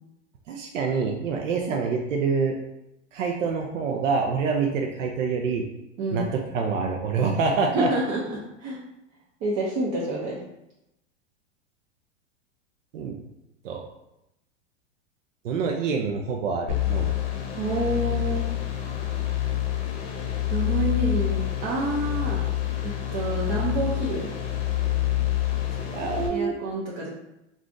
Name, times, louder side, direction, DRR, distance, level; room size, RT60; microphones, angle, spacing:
voice 1, 0.5-2.5 3.1-5.6 6.1-6.2 6.5-7.9 12.9-13.1 13.6-13.8 15.4-17.1 25.9-26.5, right 5 dB, 85° right, 1 dB, 0.5 m, -26 dB
voice 2, 6.0-6.3 7.7-8.8 9.4-10.4 17.6-18.4 20.5-22.4 22.8-24.3 26.3-27.1, right 2 dB, 45° right, -5 dB, 0.7 m, -28 dB
sound 1, 16.7-26.3, left 13 dB, 50° left, 0.7 m, -27 dB
2.4 x 2.4 x 3.7 m, 0.88 s
hypercardioid pair, 110°, 37 cm